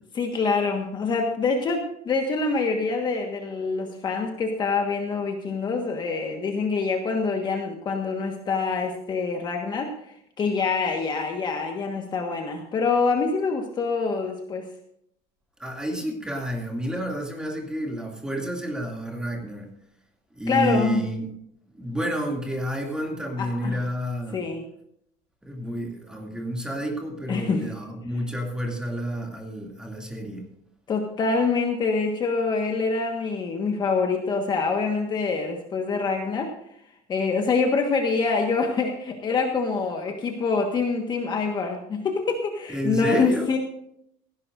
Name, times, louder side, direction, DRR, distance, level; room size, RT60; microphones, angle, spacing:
voice 1, 0.1-9.9 10.4-14.7 20.5-21.0 23.4-23.8 24.3-24.7 27.3-27.7 30.9-36.5 37.1-43.6, left 4 dB, 25° left, 3 dB, 1.5 m, -25 dB
voice 2, 15.6-19.7 20.3-21.3 21.7-24.4 25.4-30.5 42.7-43.6, right 1 dB, 5° right, 1 dB, 2.5 m, -30 dB
17.5 x 16.0 x 2.6 m, 0.74 s
cardioid pair, 170°, 17 cm